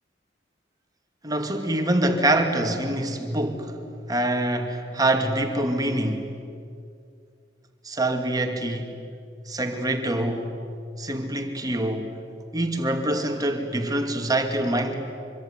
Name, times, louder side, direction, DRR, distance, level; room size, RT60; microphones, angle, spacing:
voice 1, 1.2-3.8 4.1-6.3 7.8-8.9 9.5-10.5 11.0-12.1 12.5-14.9, right 1 dB, 20° right, 2.5 m, -25 dB
25.0 x 24.0 x 9.9 m
head